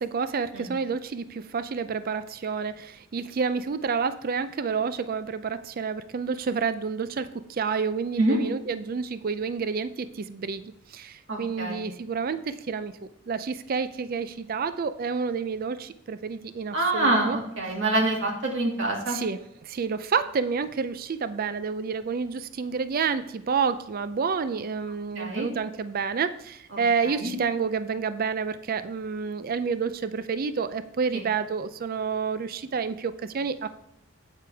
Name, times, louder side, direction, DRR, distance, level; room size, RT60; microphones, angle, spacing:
voice 1, 0.0-12.9 13.3-17.4 19.1-33.7, right 5 dB, 45° right, 13 dB, 0.4 m, -29 dB
voice 2, 11.3-11.8 16.7-19.2 25.1-25.5 26.7-27.3 31.1-31.2, right 2 dB, 60° right, -1 dB, 2.4 m, -26 dB
8.6 x 8.0 x 3.4 m, 0.81 s
head